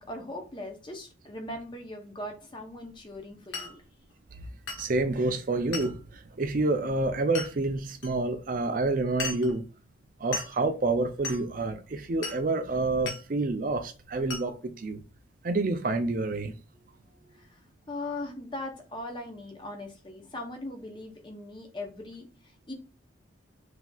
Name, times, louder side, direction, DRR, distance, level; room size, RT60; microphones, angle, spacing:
voice 1, 0.0-3.8 16.7-22.7, left 1 dB, 25° left, 0.7 m, -40 dB
Glass, 3.5-3.8 4.7-4.9 5.7-6.0 7.3-7.5 8.0-8.1 9.2-9.5 10.3-10.6 11.2-11.4 12.2-12.5 13.1-13.2 14.3-14.5, left 4 dB, 80° left, 0.8 m, -35 dB
voice 2, 4.8-9.6 10.2-15.0 15.4-16.5, right 2 dB, 45° right, 0.4 m, -28 dB
5.9 x 2.8 x 2.3 m
head